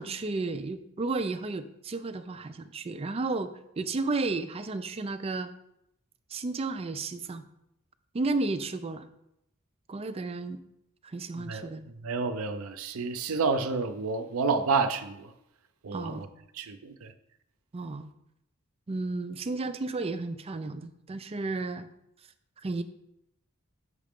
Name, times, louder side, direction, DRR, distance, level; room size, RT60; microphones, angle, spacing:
voice 1, 0.0-5.5 6.3-7.4 8.1-9.1 9.9-10.6 11.0-11.9 15.9-16.3 17.7-18.1 18.9-21.9 22.6-22.8, right 3 dB, 30° right, 10 dB, 0.4 m, -33 dB
voice 2, 11.4-11.7 12.0-15.3 15.8-16.3 16.5-17.1, right 4 dB, 85° right, 9 dB, 0.5 m, -29 dB
6.5 x 4.9 x 3.6 m, 0.80 s
head